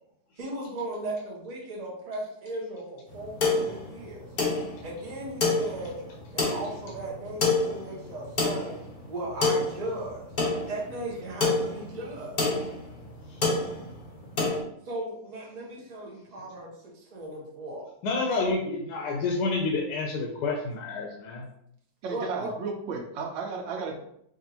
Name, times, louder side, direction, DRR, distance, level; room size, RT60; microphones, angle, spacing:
voice 1, 0.4-4.2 4.8-6.0 6.3-8.8 9.1-10.3 10.7-12.4 14.8-17.8 18.4-18.5 22.1-22.5, right 1 dB, 55° right, -4 dB, 0.4 m, -37 dB
sound 1, 3.1-14.6, left 3 dB, 50° left, 0.5 m, -29 dB
voice 2, 18.0-21.5, left 3 dB, 75° left, 0 dB, 1.2 m, -29 dB
voice 3, 22.0-24.0, right 4 dB, 85° right, 2 dB, 1.3 m, -33 dB
4.9 x 2.6 x 2.8 m, 0.73 s
omnidirectional pair, 2.0 m